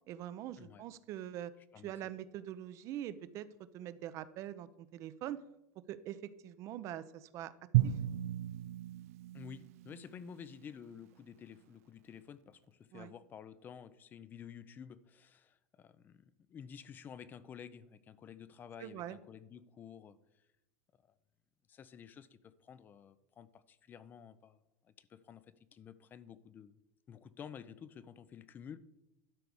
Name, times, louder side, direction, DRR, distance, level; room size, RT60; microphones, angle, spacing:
voice 1, 0.1-1.5 1.8-3.5 3.7-5.4 5.9-7.5 7.8-7.9 12.9-13.1 18.8-19.2, right 12 dB, 40° right, 15 dB, 0.6 m, -43 dB
Drum, 7.7-10.7, right 14 dB, 75° right, 0.4 m, -34 dB
voice 2, 9.3-20.2 21.7-24.6 24.8-26.8 27.1-28.8, left 7 dB, 25° left, 16 dB, 0.5 m, -51 dB
12.0 x 4.7 x 7.0 m, 0.90 s
supercardioid pair, 145°, 8 cm